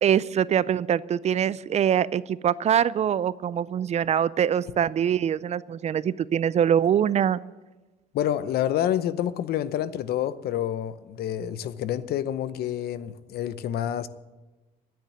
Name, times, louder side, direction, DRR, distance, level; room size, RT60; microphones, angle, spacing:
voice 1, 0.0-7.4, right 9 dB, 40° right, 0.4 m, -23 dB
voice 2, 8.1-14.1, left 11 dB, 70° left, 0.8 m, -28 dB
10.5 x 9.1 x 9.9 m
cardioid pair, 110°, 17 cm